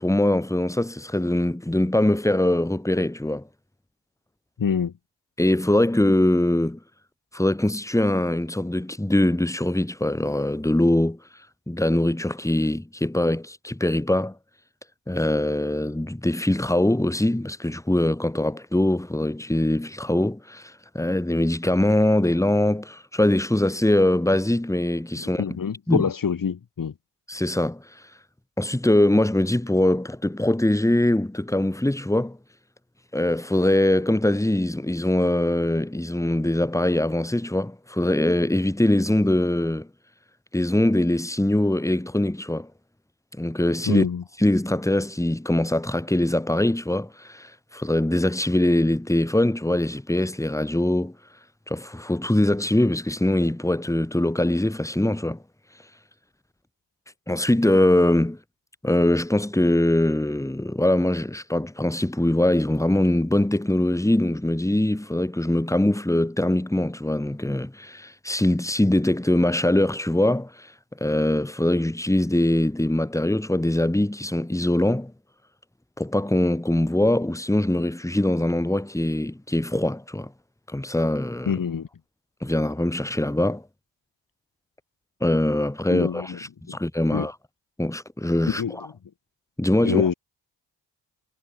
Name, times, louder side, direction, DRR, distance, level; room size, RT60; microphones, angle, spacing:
voice 1, 0.0-3.4 5.4-6.8 7.3-11.2 11.7-14.3 15.1-25.4 25.9-26.1 27.3-27.8 28.6-32.4 33.1-39.9 40.5-42.7 43.4-44.1 44.4-51.1 51.7-55.4 57.3-58.4 58.8-70.7 71.0-75.1 76.0-80.3 80.7-81.6 82.4-83.6 85.2-87.3 87.8-88.6 89.6-90.1, left 1 dB, 5° left, 5.6 m, -22 dB
voice 2, 4.6-4.9 25.4-26.9 43.9-44.2 81.5-81.9 85.9-86.4 86.7-86.8 87.1-87.3 88.5-88.9 89.8-90.1, left 7 dB, 45° left, 5.3 m, -25 dB
cardioid pair, 100°, 44 cm